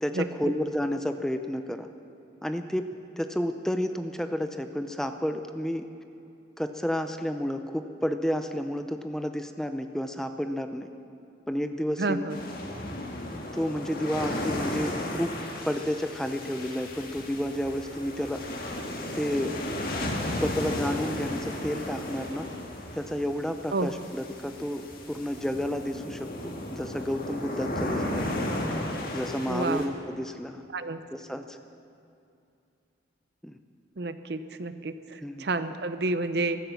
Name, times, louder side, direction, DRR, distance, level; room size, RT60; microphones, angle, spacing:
voice 1, 0.0-1.9 2.4-5.9 6.6-10.9 11.5-12.3 13.5-15.3 15.7-18.4 19.1-19.6 20.3-22.5 22.9-28.3 29.1-30.6 31.1-31.6 33.4-33.6 35.2-35.5, equal, 5° left, 7 dB, 0.5 m, -31 dB
voice 2, 12.0-12.4 23.7-23.9 29.5-29.8 30.7-31.0 34.0-36.6, right 2 dB, 60° right, 11 dB, 0.7 m, -30 dB
sound 1, 12.3-29.9, left 1 dB, 50° left, 1.9 m, -34 dB
15.0 x 13.0 x 7.0 m, 2.6 s
head